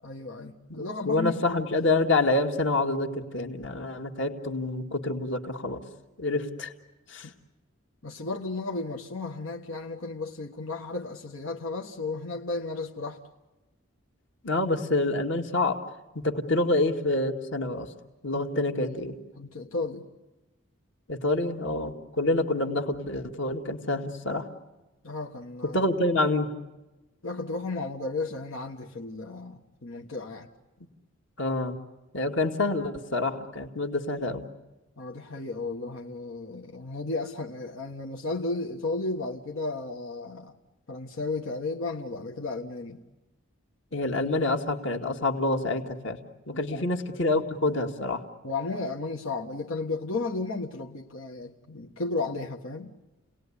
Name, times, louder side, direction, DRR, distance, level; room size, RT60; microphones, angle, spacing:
voice 1, 0.0-1.6 7.2-7.3 8.0-13.2 18.3-19.0 19.3-20.1 25.0-25.8 27.2-30.5 35.0-40.5 40.9-43.0 46.5-46.9 48.4-53.0, left 3 dB, 85° left, 1.6 m, -34 dB
voice 2, 0.7-5.8 6.2-6.7 7.1-7.3 14.4-15.8 16.1-17.9 18.2-19.1 21.1-24.5 25.6-26.5 31.4-31.8 32.1-34.4 43.9-46.2 46.5-48.2, left 2 dB, 60° left, 2.1 m, -27 dB
29.5 x 19.0 x 10.0 m
head